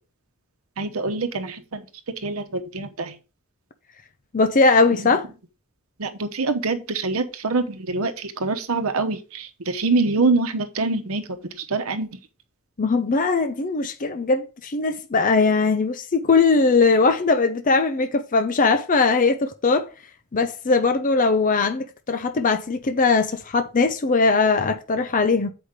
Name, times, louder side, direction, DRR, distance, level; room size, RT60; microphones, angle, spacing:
voice 1, 0.8-1.9 2.2-3.2 6.0-12.2, right 3 dB, 80° right, 1.0 m, -25 dB
voice 2, 4.3-5.3 12.8-19.9 20.3-25.5, left 4 dB, 40° left, 0.6 m, -20 dB
8.1 x 5.0 x 5.0 m
head